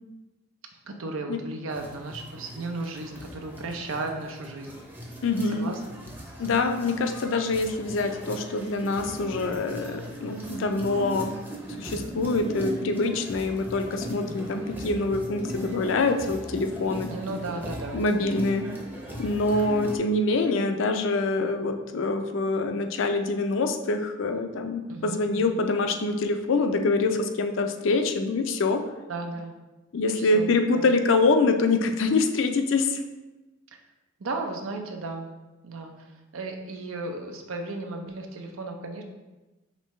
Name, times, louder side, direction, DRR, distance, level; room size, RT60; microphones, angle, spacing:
voice 1, 0.8-4.8 5.5-5.8 14.2-14.5 17.1-18.0 24.9-25.6 29.1-29.6 30.1-30.9 34.2-35.3 35.6-35.9 36.3-39.0, right 2 dB, 90° right, 3 dB, 0.6 m, -35 dB
sound 1, 1.7-20.0, right 1 dB, 10° right, 0.6 m, -39 dB
voice 2, 5.2-5.7 6.4-11.3 11.8-17.1 17.9-18.7 19.2-28.8 29.9-33.0, left 3 dB, 70° left, 6 dB, 0.4 m, -25 dB
5.2 x 3.1 x 3.1 m, 1.1 s
head